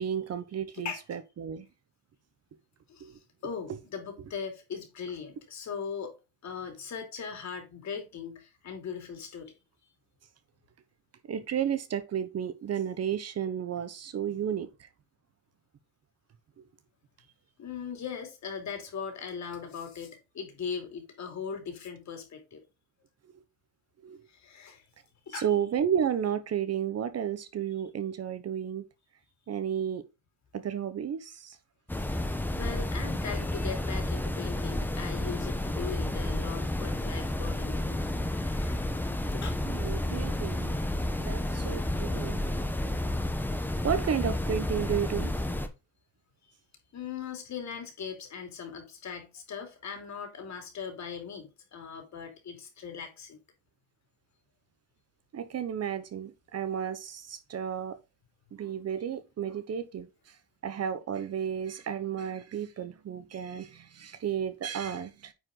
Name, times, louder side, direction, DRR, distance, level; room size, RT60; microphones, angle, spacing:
voice 1, 0.0-1.7 3.0-3.2 3.7-3.8 11.2-14.9 16.6-16.7 23.3-23.4 24.0-24.2 25.3-28.8 29.5-30.0 30.5-31.6 39.6-40.8 41.2-42.4 43.8-45.3 55.3-58.0 58.5-65.3, right 8 dB, 45° right, 1.0 m, -32 dB
voice 2, 2.9-6.1 6.4-9.5 17.6-22.6 24.3-24.8 25.3-25.4 32.0-32.2 32.5-38.0 38.4-38.9 39.3-39.6 46.9-53.4, left 6 dB, 50° left, 2.8 m, -39 dB
sound 1, 31.9-45.7, left 1 dB, 5° left, 0.9 m, -31 dB
9.5 x 5.0 x 3.8 m
cardioid pair, 155°, 35 cm